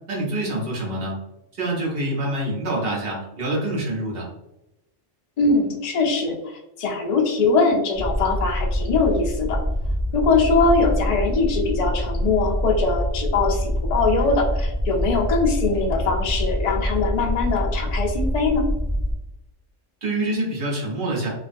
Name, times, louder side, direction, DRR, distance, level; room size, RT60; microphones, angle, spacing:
voice 1, 0.1-1.2 1.5-4.3 20.0-21.3, right 1 dB, 50° right, -3 dB, 1.0 m, -26 dB
voice 2, 5.4-9.6 10.1-18.6, left 3 dB, 65° left, 1 dB, 0.4 m, -22 dB
sound 1, 8.0-19.1, equal, 15° right, 0.4 m, -25 dB
2.4 x 2.2 x 2.5 m, 0.93 s
omnidirectional pair, 1.3 m